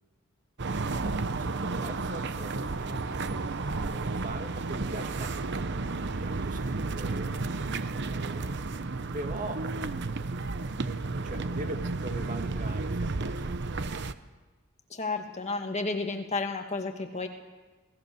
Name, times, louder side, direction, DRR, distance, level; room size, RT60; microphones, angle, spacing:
sound 1, 0.6-14.1, right 3 dB, 55° right, 0.8 m, -32 dB
voice 1, 0.9-7.3 8.1-8.5 9.1-10.4 11.2-13.6, right 1 dB, 40° right, 5 dB, 1.9 m, -42 dB
voice 2, 14.9-17.3, left 3 dB, 30° left, 4 dB, 2.1 m, -32 dB
26.5 x 18.0 x 7.0 m, 1.2 s
head